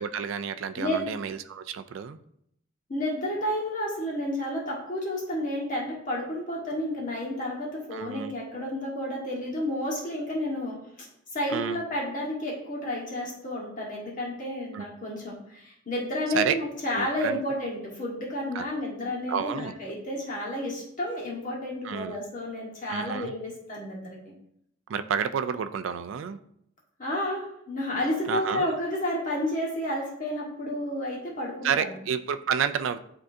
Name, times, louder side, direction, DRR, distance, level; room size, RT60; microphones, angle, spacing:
voice 1, 0.0-2.2 7.9-8.3 11.5-11.8 14.7-14.8 16.3-16.6 16.9-17.4 18.5-18.6 19.3-19.7 21.8-22.2 22.9-23.3 24.9-26.4 28.3-28.8 31.6-33.0, right 7 dB, 70° right, 11 dB, 0.3 m, -30 dB
voice 2, 0.7-1.1 2.9-11.1 11.3-24.3 27.0-31.9, left 1 dB, 40° left, -3 dB, 1.4 m, -31 dB
9.8 x 3.7 x 2.6 m, 0.73 s
head